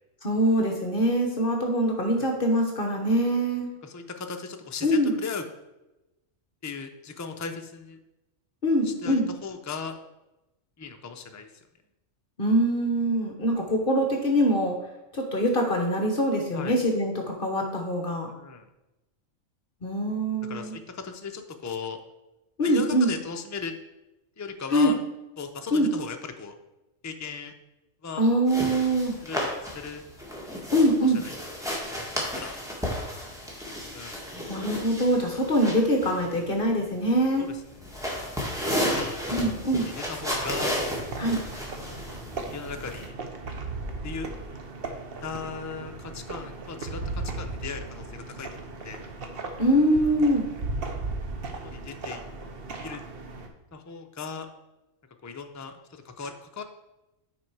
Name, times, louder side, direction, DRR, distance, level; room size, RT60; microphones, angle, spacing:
voice 1, 0.2-3.7 4.8-5.1 8.6-9.3 12.4-14.8 15.1-18.3 19.8-20.7 22.6-23.1 24.7-24.9 25.7-25.9 28.2-29.2 30.7-31.2 34.5-37.5 39.3-39.9 41.2-41.4 49.6-50.5, equal, 45° left, 2 dB, 1.2 m, -23 dB
voice 2, 3.8-5.4 6.6-8.0 8.8-9.9 10.8-11.5 16.5-16.8 18.3-18.7 20.5-22.0 22.6-23.7 24.4-25.0 25.4-26.5 27.0-27.5 28.0-28.2 29.2-30.0 31.0-31.3 32.1-32.6 33.9-34.2 37.4-37.6 38.9-39.2 39.8-40.7 41.7-42.0 42.5-43.1 44.0-44.3 45.2-49.1 51.6-52.2 52.7-53.0 53.7-54.5 55.2-56.6, left 5 dB, 25° left, 5 dB, 0.3 m, -37 dB
sound 1, 28.5-43.1, equal, ahead, 1.7 m, -33 dB
sound 2, 40.2-53.5, right 3 dB, 50° right, 1.0 m, -37 dB
8.9 x 4.8 x 4.7 m, 0.97 s
omnidirectional pair, 1.4 m